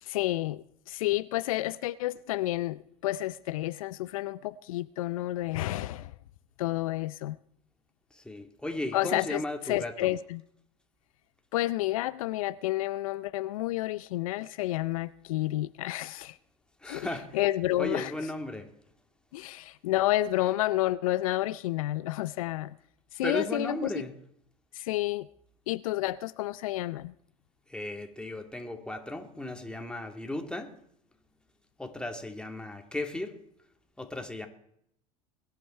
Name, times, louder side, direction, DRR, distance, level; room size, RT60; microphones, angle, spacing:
voice 1, 0.0-6.1 6.6-7.4 8.9-9.4 9.7-10.4 11.5-16.4 16.9-17.1 17.3-18.1 19.3-22.7 23.1-23.9 24.7-25.3 25.7-27.1, left 16 dB, 75° left, 0.5 m, -30 dB
voice 2, 8.1-10.1 16.8-17.4 17.8-18.7 23.2-24.1 27.7-30.7 31.8-33.4 34.0-34.5, left 1 dB, 5° left, 2.5 m, -35 dB
22.0 x 10.5 x 4.5 m
hypercardioid pair, 85°, 18 cm